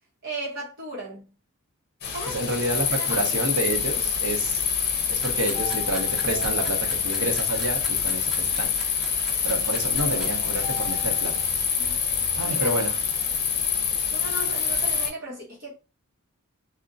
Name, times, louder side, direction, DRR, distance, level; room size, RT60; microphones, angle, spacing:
voice 1, 0.2-1.3 2.1-2.4 3.0-3.2 11.8-12.0 12.4-12.8 14.1-15.8, right 2 dB, 45° right, 1.0 m, -36 dB
sound 1, 2.0-15.1, left 7 dB, 45° left, 0.6 m, -26 dB
voice 2, 2.3-4.6 5.1-8.7 9.4-11.4 12.4-13.0, right 1 dB, 75° right, 0.8 m, -29 dB
sound 2, 5.2-10.3, equal, ahead, 0.6 m, -40 dB
sound 3, 5.5-7.4 10.0-11.5, left 5 dB, 25° left, 1.3 m, -39 dB
2.4 x 2.1 x 3.7 m
head